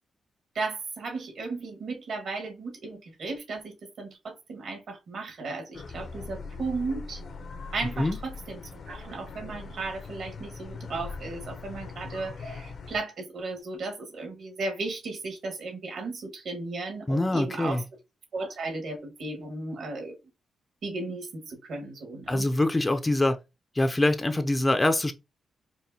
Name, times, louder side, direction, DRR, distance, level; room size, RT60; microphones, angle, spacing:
voice 1, 0.5-7.2 7.7-8.6 8.9-17.8 18.3-20.1 20.8-22.5, right 3 dB, 70° right, 1.4 m, -35 dB
sound 1, 5.7-13.0, left 4 dB, 65° left, 0.6 m, -41 dB
voice 2, 17.1-17.8 22.3-23.4 23.8-25.1, left 1 dB, 15° left, 0.4 m, -24 dB
4.7 x 2.5 x 2.7 m
wide cardioid pair, 125°, 0 cm